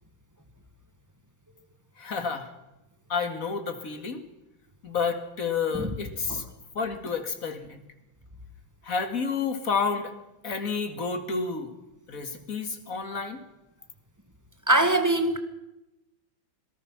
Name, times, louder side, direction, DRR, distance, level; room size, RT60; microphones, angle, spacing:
voice 1, 2.0-2.5 3.1-4.2 4.8-6.4 6.8-7.8 8.8-10.1 10.4-11.7 12.1-13.4, left 5 dB, 45° left, 7 dB, 2.4 m, -30 dB
voice 2, 14.7-15.4, right 2 dB, 10° right, 8 dB, 1.7 m, -22 dB
26.0 x 18.5 x 6.0 m, 0.93 s
omnidirectional pair, 2.2 m